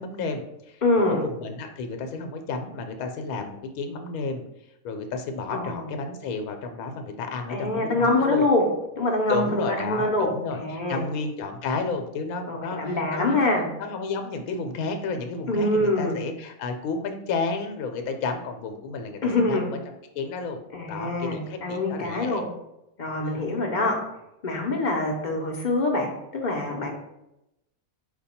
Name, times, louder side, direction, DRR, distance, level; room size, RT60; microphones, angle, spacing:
voice 1, 0.0-4.4 4.8-8.5 9.3-10.6 10.9-13.5 13.8-19.8 20.1-20.6 20.9-22.4 23.2-23.4, left 4 dB, 80° left, 5 dB, 1.0 m, -32 dB
voice 2, 0.8-1.2 5.5-5.9 7.5-8.7 9.0-11.0 12.5-13.7 15.5-16.2 19.2-19.7 20.7-22.5 23.0-23.9 24.4-26.9, left 2 dB, 50° left, 0 dB, 0.6 m, -25 dB
5.0 x 2.3 x 4.1 m, 0.87 s
omnidirectional pair, 1.5 m